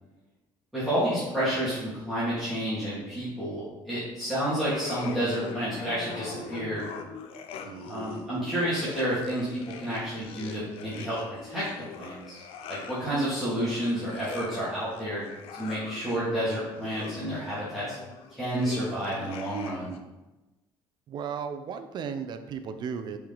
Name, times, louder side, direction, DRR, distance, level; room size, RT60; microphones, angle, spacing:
voice 1, 0.7-6.9 7.9-11.6 12.0-12.4 12.7-15.3 15.5-18.0 18.3-19.9, equal, ahead, -13 dB, 2.6 m, -30 dB
sound 1, 4.6-20.0, left 6 dB, 85° left, 0.6 m, -43 dB
voice 2, 7.6-8.1 21.1-23.2, right 7 dB, 50° right, 9 dB, 0.6 m, -36 dB
7.8 x 4.6 x 4.0 m, 1.1 s
cardioid pair, 150°, 10 cm